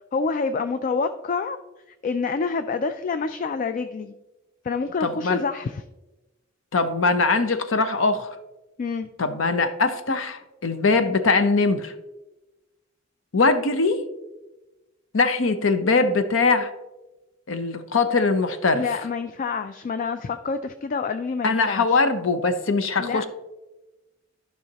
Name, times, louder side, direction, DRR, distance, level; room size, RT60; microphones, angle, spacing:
voice 1, 0.1-1.6 2.0-4.1 4.6-5.8 8.8-9.1 18.7-22.0 23.0-23.3, left 4 dB, 40° left, 10 dB, 0.3 m, -27 dB
voice 2, 5.0-5.4 6.7-8.4 9.2-11.9 13.3-14.1 15.1-16.7 17.5-18.8 21.4-23.3, left 3 dB, 70° left, 10 dB, 0.7 m, -21 dB
12.5 x 5.6 x 2.9 m, 1.1 s
head